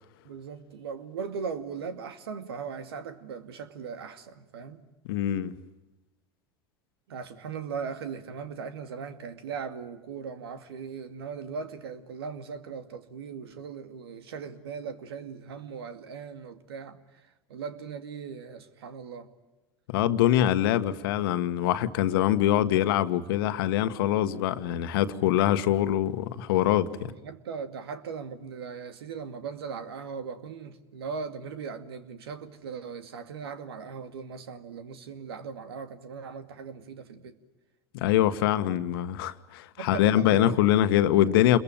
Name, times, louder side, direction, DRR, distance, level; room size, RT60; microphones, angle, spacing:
voice 1, 0.2-4.8 7.1-19.3 27.0-37.4 39.8-40.6, right 6 dB, 80° right, 2.3 m, -39 dB
voice 2, 5.1-5.5 19.9-27.1 37.9-41.6, left 12 dB, 70° left, 1.5 m, -24 dB
28.5 x 22.0 x 8.9 m
hypercardioid pair, 85°, 13 cm